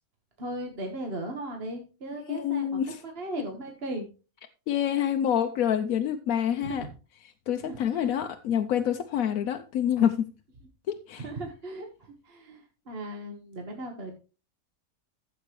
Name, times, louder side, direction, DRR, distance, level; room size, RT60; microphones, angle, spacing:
voice 1, 0.4-4.1 6.6-6.9 7.5-8.3 11.2-11.9 12.2-14.1, right 1 dB, 45° right, 1.7 m, -37 dB
voice 2, 2.3-3.0 4.7-6.9 7.2-10.3 10.9-11.3, left 9 dB, 75° left, 1.1 m, -27 dB
13.5 x 7.7 x 3.1 m
omnidirectional pair, 1.5 m